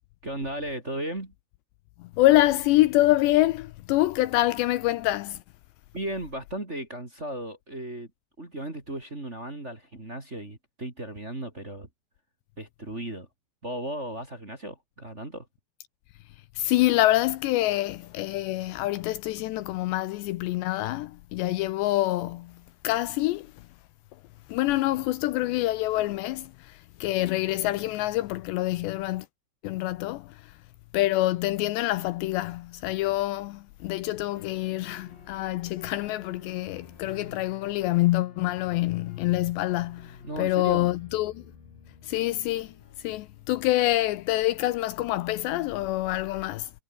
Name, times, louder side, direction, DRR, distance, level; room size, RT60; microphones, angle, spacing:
voice 1, 0.2-1.3 5.9-8.1 8.4-11.9 12.6-13.3 13.6-15.5 40.2-40.9, right 1 dB, 20° right, 2.6 m, -35 dB
voice 2, 2.0-5.4 16.6-23.5 24.5-29.3 29.6-30.4 30.9-41.4 42.0-42.7 43.0-46.7, left 16 dB, 80° left, 2.8 m, -26 dB
sound 1, 34.4-44.2, left 5 dB, 50° left, 6.8 m, -50 dB
omnidirectional pair, 5.3 m